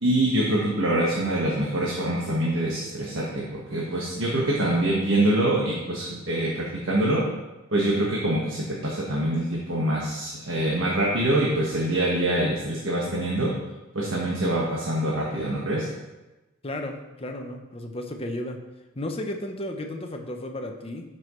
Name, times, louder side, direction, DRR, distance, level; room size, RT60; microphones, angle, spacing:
voice 1, 0.0-7.3 7.7-13.5 13.9-15.9, right 1 dB, 60° right, -4 dB, 1.5 m, -25 dB
voice 2, 16.6-18.6 19.0-21.2, left 1 dB, 25° left, 4 dB, 0.8 m, -33 dB
12.5 x 6.2 x 3.2 m, 1.1 s
head